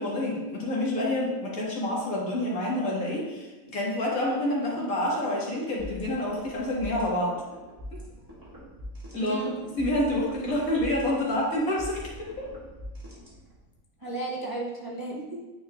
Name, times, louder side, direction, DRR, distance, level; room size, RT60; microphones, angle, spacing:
voice 1, 0.0-7.4 9.1-9.4 9.8-12.5, left 1 dB, 80° left, -4 dB, 2.0 m, -28 dB
sound 1, 5.8-13.8, equal, 15° right, 1.8 m, -43 dB
voice 2, 9.1-9.7 14.0-15.4, right 2 dB, 35° right, -2 dB, 0.3 m, -34 dB
9.2 x 4.7 x 2.4 m, 1.2 s
omnidirectional pair, 1.4 m